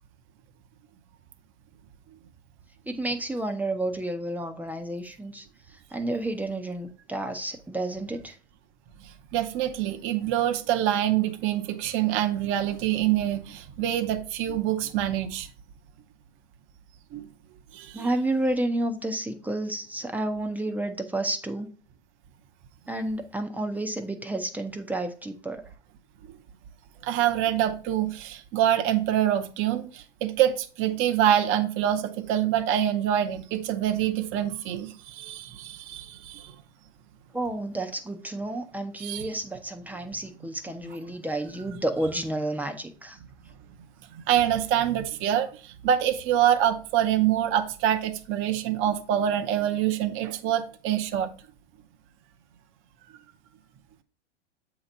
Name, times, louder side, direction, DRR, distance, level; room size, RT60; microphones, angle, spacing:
voice 1, 2.9-5.4 5.9-8.3 17.9-21.7 22.9-25.6 37.3-43.2, right 1 dB, 5° right, 0.6 m, -30 dB
voice 2, 9.3-15.5 17.1-17.2 17.7-18.1 27.0-36.5 39.0-39.3 44.3-51.3, right 11 dB, 35° right, 0.8 m, -25 dB
7.8 x 3.0 x 5.2 m
hypercardioid pair, 105°, 34 cm